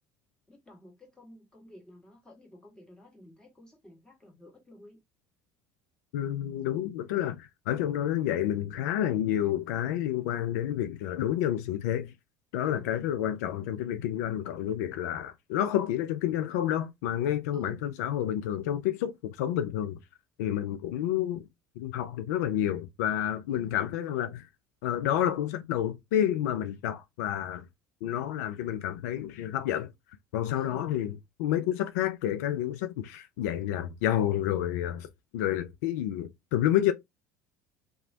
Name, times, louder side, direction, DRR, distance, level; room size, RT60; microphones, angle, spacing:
voice 1, 0.5-5.0 12.6-13.0 17.5-17.9 23.5-23.8 30.6-30.9, left 1 dB, 10° left, 1.7 m, -51 dB
voice 2, 6.1-12.1 12.5-20.0 20.4-21.4 21.8-24.5 24.8-27.6 28.0-29.9 30.3-35.1 35.3-36.9, left 11 dB, 75° left, 0.4 m, -29 dB
2.9 x 2.3 x 2.7 m
hypercardioid pair, 70°, 9 cm